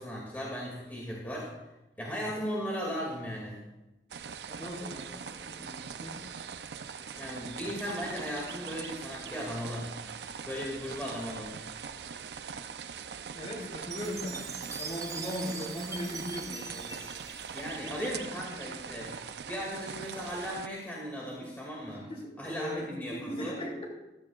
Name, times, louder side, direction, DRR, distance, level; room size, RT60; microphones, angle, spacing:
voice 1, 0.0-1.5 2.0-3.6 7.2-9.9 10.4-11.5 17.5-19.2 19.5-22.1 22.4-23.6, equal, 10° left, -4 dB, 2.4 m, -37 dB
sound 1, 4.1-20.7, right 6 dB, 70° right, 0.5 m, -42 dB
voice 2, 4.5-6.3 13.3-14.5 14.8-17.0 22.1-23.8, equal, 35° left, -2 dB, 3.5 m, -38 dB
Chime, 13.9-18.2, right 5 dB, 20° right, 0.6 m, -42 dB
15.0 x 13.0 x 2.4 m, 1.0 s
head